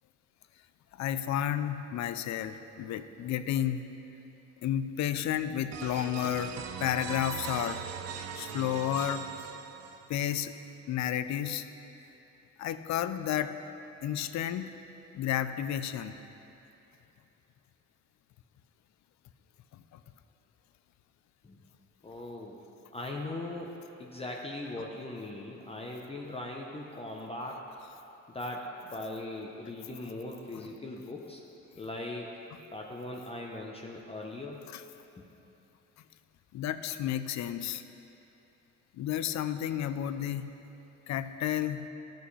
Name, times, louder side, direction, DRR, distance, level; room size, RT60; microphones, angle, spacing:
voice 1, 0.9-3.8 4.6-6.6 6.8-7.8 8.4-9.3 10.1-10.5 10.9-11.7 12.6-13.6 14.0-14.7 15.1-16.2 19.9-20.0 34.7-34.8 36.5-37.8 39.0-40.5 41.1-41.9, left 10 dB, 65° left, 11 dB, 0.5 m, -31 dB
sound 1, 5.7-10.3, right 7 dB, 60° right, 0.5 m, -40 dB
voice 2, 22.0-22.6 22.9-27.6 28.3-31.4 31.7-32.3 32.7-34.7 35.2-35.3, left 2 dB, 20° left, -1 dB, 0.7 m, -40 dB
12.5 x 5.7 x 3.2 m, 2.9 s
cardioid pair, 90°, 30 cm